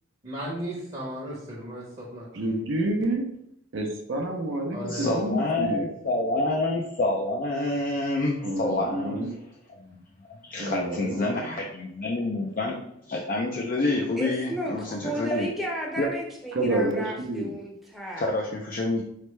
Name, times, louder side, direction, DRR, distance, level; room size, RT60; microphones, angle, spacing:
voice 1, 0.2-2.3 4.7-5.1, right 1 dB, 30° right, -4 dB, 0.9 m, -35 dB
voice 2, 2.3-3.2 3.7-5.9 8.4-9.4 10.6-11.6 16.5-17.6, right 1 dB, 60° right, 1 dB, 0.7 m, -29 dB
voice 3, 4.9-9.2 10.5-12.8 13.1-15.5 16.0-16.1 18.2-19.0, left 2 dB, 40° left, -1 dB, 0.4 m, -27 dB
voice 4, 14.2-18.2, right 1 dB, ahead, -2 dB, 0.7 m, -33 dB
4.1 x 3.3 x 3.2 m, 0.76 s
head